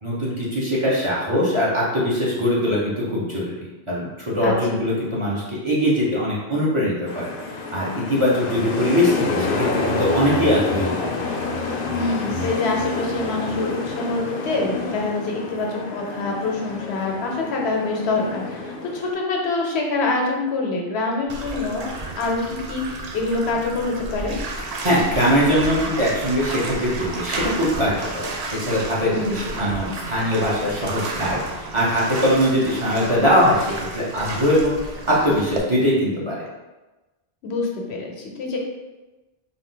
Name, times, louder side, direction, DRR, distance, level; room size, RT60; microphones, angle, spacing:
voice 1, 0.0-7.3 7.7-11.1 24.8-34.8 35.1-36.4, equal, 30° right, -6 dB, 0.8 m, -21 dB
voice 2, 4.4-4.8 11.9-21.9 22.2-24.4 29.1-29.4 37.4-38.6, left 3 dB, 85° left, 0 dB, 1.1 m, -25 dB
sound 1, 7.1-19.1, left 3 dB, 65° left, 0.8 m, -28 dB
Bathtub (filling or washing), 21.3-35.6, right 3 dB, 50° right, 0.5 m, -32 dB
3.9 x 2.5 x 3.8 m, 1.1 s
omnidirectional pair, 1.1 m